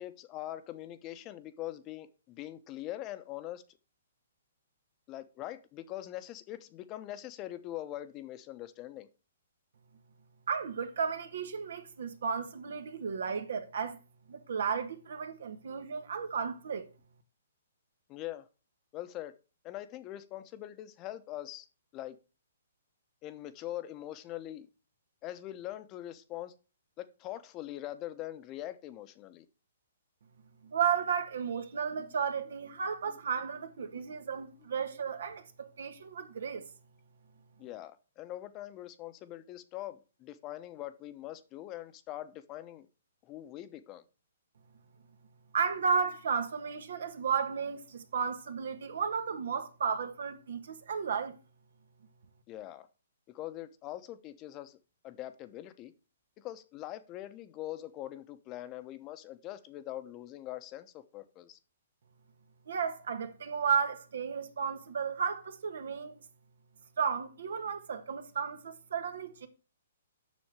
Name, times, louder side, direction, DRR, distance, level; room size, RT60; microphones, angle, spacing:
voice 1, 0.0-3.6 5.1-9.1 18.1-18.5 18.9-19.3 19.6-21.7 21.9-22.2 23.2-24.7 25.2-26.5 27.0-29.4 32.0-32.1 33.1-33.2 37.6-42.9 43.2-44.0 52.5-52.9 53.3-54.8 55.0-55.9 56.4-61.6, left 14 dB, 30° left, 0.9 m, -42 dB
voice 2, 10.5-14.0 14.3-16.9 30.6-36.7 45.5-51.3 62.7-66.1 67.0-69.5, right 6 dB, 70° right, 1.4 m, -33 dB
7.4 x 6.2 x 4.8 m
hypercardioid pair, 135°, 0 cm